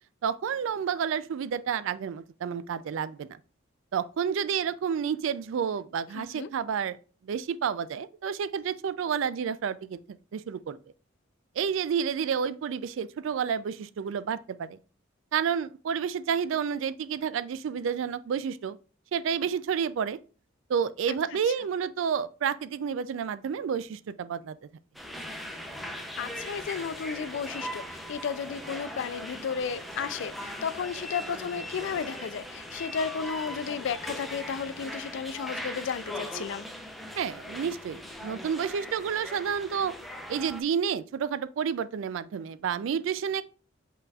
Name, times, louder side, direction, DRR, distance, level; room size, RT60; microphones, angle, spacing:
voice 1, 0.2-3.3 3.9-7.0 7.2-10.8 11.6-14.8 15.3-18.8 19.1-20.2 20.7-24.6 37.2-39.9 40.3-43.4, right 7 dB, 65° right, 0.3 m, -30 dB
voice 2, 6.1-6.5 26.2-36.6, left 6 dB, 60° left, 0.3 m, -33 dB
sound 1, 24.9-40.6, equal, ahead, 0.5 m, -40 dB
5.4 x 4.0 x 2.3 m
head